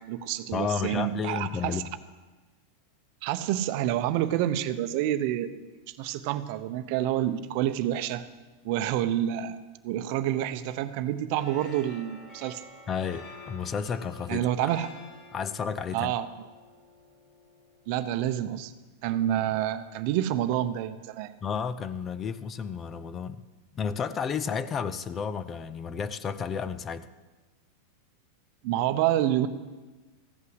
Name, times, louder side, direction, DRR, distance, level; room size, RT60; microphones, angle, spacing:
voice 1, 0.0-1.8 3.2-5.6 5.9-8.2 8.6-9.6 9.8-12.7 14.3-14.9 15.9-16.3 17.9-18.7 19.0-21.3 28.6-29.5, right 12 dB, 55° right, 11 dB, 0.7 m, -28 dB
voice 2, 0.5-1.9 12.9-14.7 15.3-16.1 21.4-23.4 23.8-27.1, left 6 dB, 30° left, 15 dB, 0.5 m, -32 dB
sound 1, 11.3-18.6, left 2 dB, 50° left, 2.2 m, -50 dB
14.5 x 5.6 x 7.9 m, 1.2 s
hypercardioid pair, 120°, 0 cm